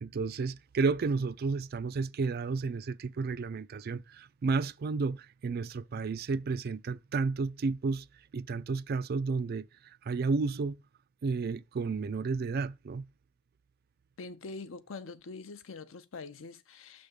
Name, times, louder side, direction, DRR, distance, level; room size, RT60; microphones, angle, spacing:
voice 1, 0.0-8.0 8.3-9.7 10.1-10.8 11.2-13.0, right 4 dB, 50° right, 0.4 m, -32 dB
voice 2, 14.2-17.1, left 3 dB, 80° left, 0.6 m, -44 dB
6.4 x 3.5 x 5.1 m
head